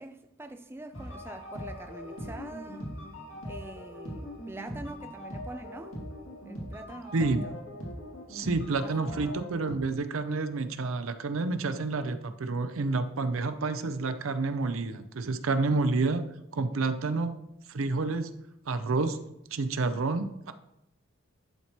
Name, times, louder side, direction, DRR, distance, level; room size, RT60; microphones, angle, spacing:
voice 1, 0.0-2.9 3.5-6.0 6.3-7.6 8.8-9.4, right 2 dB, 10° right, 0.3 m, -44 dB
sound 1, 0.9-9.7, equal, 85° left, 2.2 m, -41 dB
voice 2, 7.1-7.4 8.3-16.2 16.5-17.4 17.7-18.3 18.7-19.2 19.5-20.5, right 3 dB, 85° right, 0.6 m, -29 dB
11.0 x 4.3 x 3.0 m
head